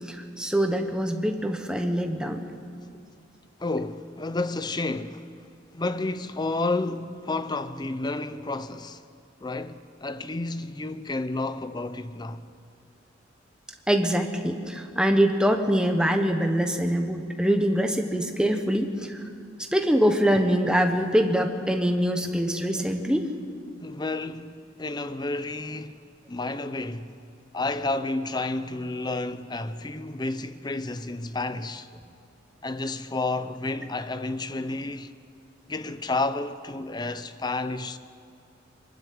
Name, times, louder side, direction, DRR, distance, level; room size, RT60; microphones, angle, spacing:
voice 1, 0.0-2.4 13.9-19.2 19.7-23.3, equal, 5° right, 1.1 m, -24 dB
voice 2, 3.6-5.3 5.7-9.0 9.4-12.4 23.8-26.0 26.3-27.1 27.5-31.9 32.6-35.1 35.7-38.0, left 2 dB, 20° left, 0.6 m, -31 dB
22.5 x 12.5 x 9.5 m
head